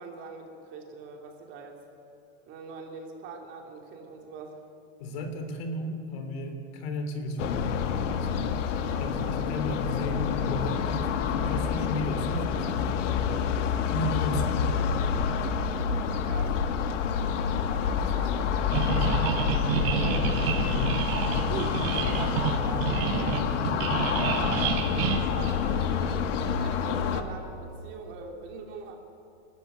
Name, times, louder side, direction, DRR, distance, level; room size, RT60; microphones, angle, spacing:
voice 1, 0.0-1.8 2.4-4.6 14.3-14.5 16.2-16.6 17.7-20.4 21.5-26.2 26.6-29.0, right 4 dB, 35° right, 2 dB, 3.0 m, -42 dB
voice 2, 5.0-8.5 9.0-13.4 13.9-14.6 20.7-21.0, left 1 dB, 55° left, 6 dB, 3.5 m, -34 dB
sound 1, 7.4-27.2, left 7 dB, 90° left, 1.9 m, -28 dB
sound 2, 18.7-26.1, right 8 dB, 55° right, 3.3 m, -29 dB
29.0 x 12.5 x 9.6 m, 2.7 s
supercardioid pair, 170°, 36 cm